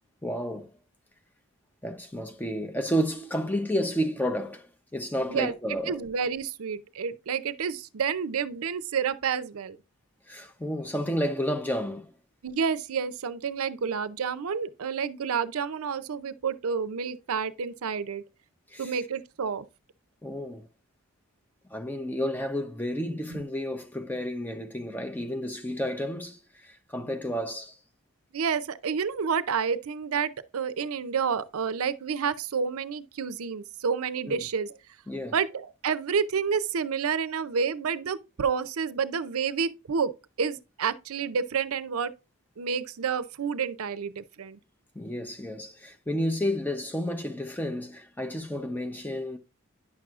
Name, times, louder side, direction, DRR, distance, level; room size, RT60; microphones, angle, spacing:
voice 1, 0.2-0.7 1.8-6.0 10.3-12.1 18.7-19.0 20.2-20.7 21.7-27.8 34.2-34.5 35.1-35.4 44.9-49.4, equal, 10° left, 0.6 m, -31 dB
voice 2, 5.9-9.8 12.4-18.2 18.8-19.6 23.3-23.4 28.3-34.8 35.3-40.1 40.4-42.1 42.6-44.6, right 6 dB, 85° right, 0.5 m, -29 dB
9.6 x 6.1 x 2.4 m
head